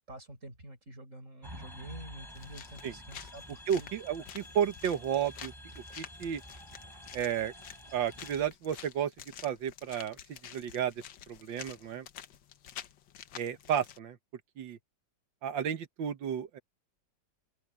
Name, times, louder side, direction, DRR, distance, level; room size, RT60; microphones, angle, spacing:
voice 1, 0.1-3.9, right 1 dB, 40° right, 6.1 m, -48 dB
sound 1, 1.4-8.5, equal, 10° right, 3.6 m, -49 dB
sound 2, 2.3-14.0, left 10 dB, 80° left, 1.7 m, -50 dB
voice 2, 3.7-5.5 6.0-6.4 7.1-7.5 7.9-9.1 9.4-10.2 10.5-10.9 11.3-12.1 13.4-14.2 14.6-14.8 15.4-16.6, right 9 dB, 85° right, 1.9 m, -32 dB
open air
omnidirectional pair, 2.0 m